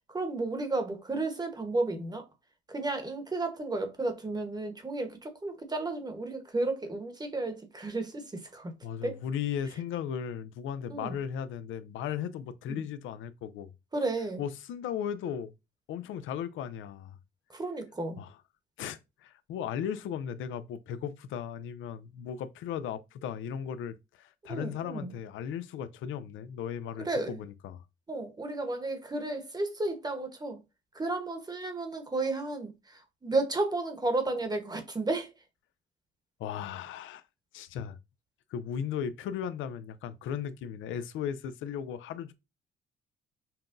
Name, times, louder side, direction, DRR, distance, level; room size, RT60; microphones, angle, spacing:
voice 1, 0.1-2.3 2.7-8.7 9.0-9.2 10.9-11.2 12.7-12.8 13.9-14.4 17.5-18.2 24.5-25.1 27.0-27.4 28.1-30.6 30.9-35.3, right 2 dB, 20° right, 1.0 m, -33 dB
voice 2, 8.8-13.7 14.4-15.5 15.9-17.2 18.2-18.3 18.8-27.1 27.4-27.8 36.4-37.2 37.5-38.0 38.5-42.3, left 8 dB, 80° left, 0.5 m, -36 dB
5.6 x 2.2 x 2.5 m
cardioid pair, 90°, 20 cm